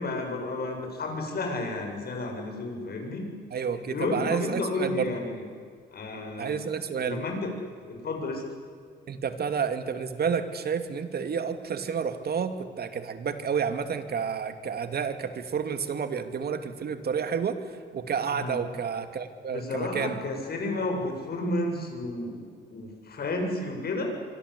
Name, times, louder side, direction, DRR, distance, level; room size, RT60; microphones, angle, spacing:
voice 1, 0.0-3.3 3.9-5.4 5.9-6.6 7.0-8.4 18.3-18.6 19.5-22.4 22.7-24.1, left 2 dB, 50° left, 3 dB, 7.8 m, -32 dB
voice 2, 3.5-5.1 6.4-7.2 9.1-20.2, right 6 dB, 50° right, 9 dB, 2.7 m, -30 dB
26.0 x 25.0 x 8.5 m, 2.1 s
cardioid pair, 90°, 20 cm